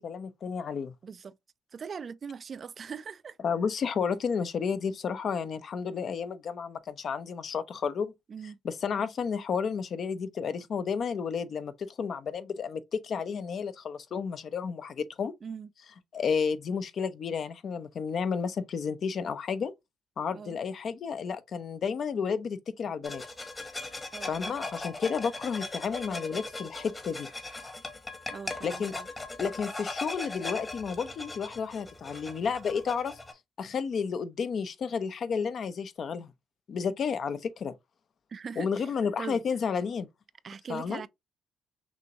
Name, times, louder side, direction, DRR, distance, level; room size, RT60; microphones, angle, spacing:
voice 1, 0.0-0.9 3.4-8.1 8.6-15.3 16.1-19.7 20.2-23.2 24.3-27.3 28.6-28.9 29.4-33.2 33.6-36.3 36.7-37.7 38.6-40.1 40.7-41.0, left 6 dB, 55° left, 0.6 m, -31 dB
voice 2, 1.0-1.3 1.7-3.4 8.3-8.6 15.4-15.7 20.3-20.6 24.1-24.5 28.3-29.1 38.3-39.4 40.4-41.1, right 6 dB, 45° right, 0.3 m, -41 dB
sound 1, 23.0-33.3, left 2 dB, 20° left, 1.1 m, -39 dB
6.1 x 2.6 x 2.8 m
cardioid pair, 90°, 0 cm